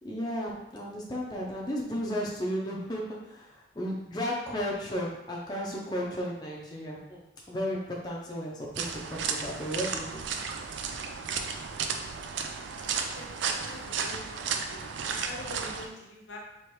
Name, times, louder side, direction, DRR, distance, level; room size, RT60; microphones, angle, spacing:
voice 1, 0.0-7.8 8.0-10.3, equal, 20° left, -3 dB, 0.6 m, -34 dB
sound 1, 8.8-15.9, right 6 dB, 70° right, 0.4 m, -34 dB
voice 2, 12.7-14.2 14.5-16.4, left 1 dB, 80° left, -1 dB, 0.9 m, -46 dB
4.7 x 3.0 x 3.0 m, 0.89 s
head